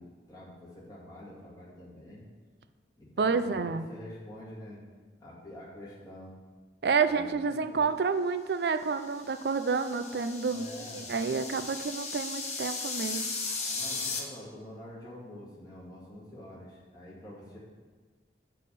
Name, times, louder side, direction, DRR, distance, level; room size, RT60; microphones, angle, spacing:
voice 1, 0.0-2.2 3.0-4.8 5.2-6.3 7.0-7.3 7.7-7.9 10.4-11.1 13.7-17.6, left 1 dB, 20° left, -7 dB, 2.1 m, -47 dB
voice 2, 3.2-3.9 6.8-10.7 10.9-13.2, right 5 dB, 65° right, 10 dB, 0.4 m, -29 dB
sound 1, 9.1-14.2, left 4 dB, 40° left, 0.9 m, -36 dB
8.5 x 3.5 x 6.8 m, 1.4 s
head